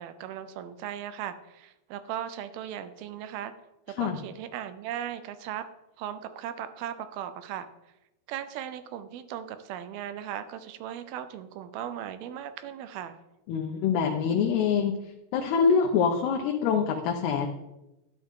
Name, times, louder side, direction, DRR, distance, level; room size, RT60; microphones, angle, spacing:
voice 1, 0.0-3.5 4.0-5.7 6.0-7.7 8.3-13.2, right 10 dB, 80° right, 11 dB, 2.3 m, -37 dB
voice 2, 13.5-14.9 15.3-17.5, left 6 dB, 80° left, 2 dB, 2.8 m, -25 dB
12.0 x 10.5 x 3.7 m, 0.95 s
omnidirectional pair, 4.8 m